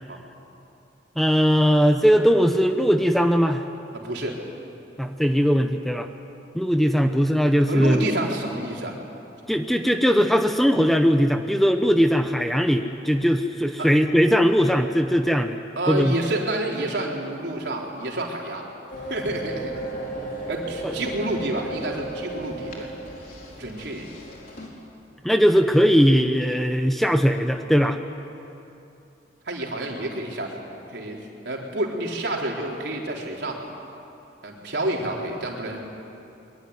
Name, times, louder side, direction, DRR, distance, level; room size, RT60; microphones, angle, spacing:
voice 1, 1.2-3.6 5.0-6.1 6.5-8.1 9.5-15.6 15.9-16.1 20.8-20.9 25.2-28.0, equal, ahead, 6 dB, 0.8 m, -19 dB
voice 2, 3.9-4.4 7.7-9.0 13.8-13.9 15.8-18.6 19.1-19.9 20.5-22.9 23.6-24.1 29.5-30.5 30.9-31.2 31.4-33.7 34.4-35.8, right 1 dB, 65° right, -1 dB, 4.2 m, -29 dB
sound 1, 18.9-24.7, right 2 dB, 50° left, 4.3 m, -35 dB
23.5 x 23.0 x 9.8 m, 2.7 s
head